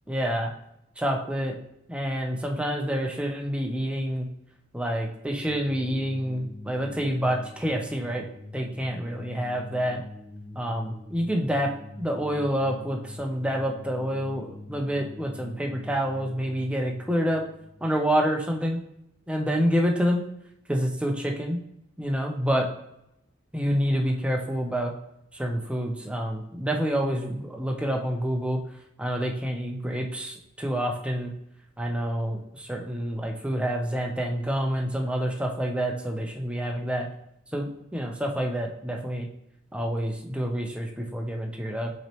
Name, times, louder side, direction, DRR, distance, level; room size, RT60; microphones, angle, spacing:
voice 1, 0.1-0.5 1.0-1.6 1.9-4.3 4.7-8.2 8.5-10.0 10.6-11.7 12.0-17.4 17.8-18.8 19.3-20.3 20.7-21.6 22.0-22.7 23.5-24.9 25.3-28.6 29.0-31.3 31.8-37.1 37.5-39.3 39.7-41.9, equal, 5° right, 1 dB, 0.6 m, -28 dB
sound 1, 5.5-18.6, left 1 dB, 25° left, 1.4 m, -44 dB
5.8 x 3.0 x 3.0 m, 0.81 s
head